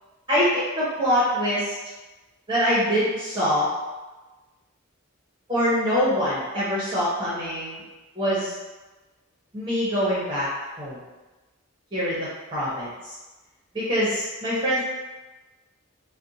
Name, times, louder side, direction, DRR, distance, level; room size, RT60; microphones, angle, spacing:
voice 1, 0.3-1.7 2.5-3.7 5.5-7.8 8.2-8.5 9.5-10.5 10.8-11.0 11.9-12.9 13.7-14.8, equal, 20° right, -9 dB, 0.7 m, -24 dB
2.5 x 2.1 x 3.9 m, 1.2 s
head